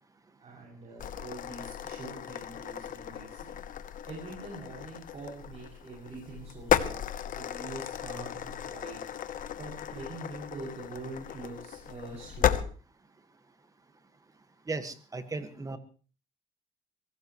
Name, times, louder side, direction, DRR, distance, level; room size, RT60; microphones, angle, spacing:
voice 1, 0.4-3.6 4.1-7.0 7.2-9.0 9.6-12.6, right 2 dB, 40° right, -3 dB, 7.4 m, -44 dB
sound 1, 1.0-12.6, left 10 dB, 55° left, 1.1 m, -34 dB
voice 2, 14.7-15.8, right 3 dB, 20° right, 9 dB, 1.8 m, -36 dB
23.5 x 17.0 x 3.2 m, 0.39 s
cardioid pair, 110°, 17 cm